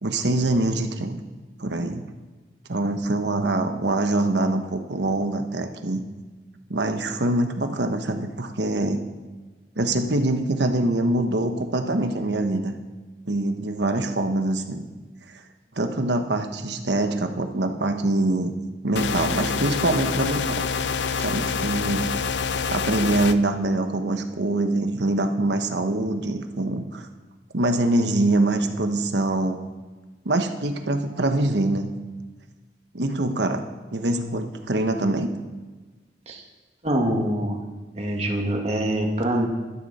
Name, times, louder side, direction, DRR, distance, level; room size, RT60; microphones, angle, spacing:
voice 1, 0.0-1.2 1.6-2.0 2.7-6.0 6.7-9.0 9.8-12.7 13.3-14.9 15.8-18.5 18.8-20.6 21.2-22.0 22.7-27.1 27.5-29.6 30.2-31.9 32.9-33.6 33.9-35.3, right 2 dB, 75° right, 6 dB, 1.2 m, -24 dB
sound 1, 19.0-23.3, left 5 dB, 85° left, 0.6 m, -26 dB
voice 2, 36.8-37.6 37.9-39.5, right 1 dB, 35° right, 0 dB, 2.0 m, -24 dB
13.0 x 13.0 x 4.3 m, 1.3 s
head